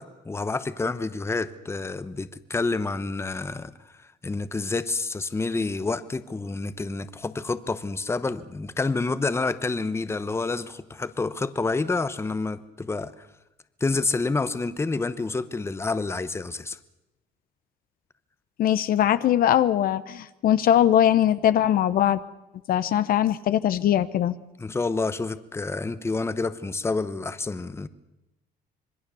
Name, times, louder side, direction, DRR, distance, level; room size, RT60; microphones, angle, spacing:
voice 1, 0.0-3.7 4.0-13.3 13.8-16.8 23.9-24.0 24.6-27.9, left 3 dB, 15° left, 1.0 m, -28 dB
voice 2, 18.6-22.2 22.7-24.3, left 11 dB, 60° left, 0.9 m, -21 dB
26.0 x 21.0 x 7.0 m
cardioid pair, 110°, 17 cm